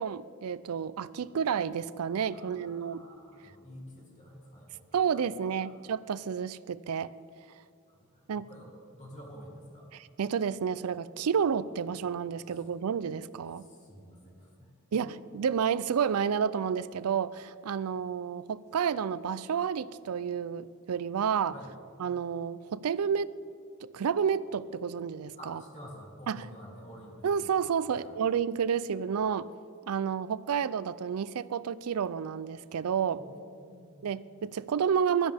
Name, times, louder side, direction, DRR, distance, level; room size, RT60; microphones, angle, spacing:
voice 1, 0.0-3.1 4.9-7.1 8.3-8.5 9.9-13.7 14.9-15.1 15.3-21.5 22.0-23.3 23.8-25.6 26.3-26.5 27.2-29.5 29.9-33.2 34.0-35.3, right 7 dB, 80° right, 17 dB, 0.4 m, -30 dB
voice 2, 2.3-5.7 7.9-9.9 12.5-12.6 13.6-15.1 21.5-21.7 25.4-28.2 33.1-34.1, equal, 35° left, -3 dB, 2.9 m, -50 dB
16.5 x 12.5 x 3.5 m, 2.2 s
head